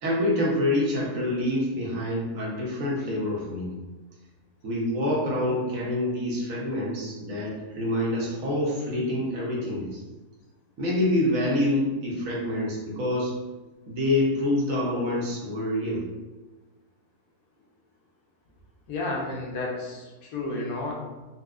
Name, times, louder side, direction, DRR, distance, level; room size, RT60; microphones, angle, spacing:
voice 1, 0.0-3.8 4.6-10.0 10.8-13.3 13.9-16.0, left 1 dB, 65° right, -4 dB, 1.1 m, -26 dB
voice 2, 18.9-20.9, left 2 dB, 75° left, -1 dB, 1.2 m, -31 dB
4.1 x 2.3 x 2.3 m, 1.2 s
omnidirectional pair, 1.7 m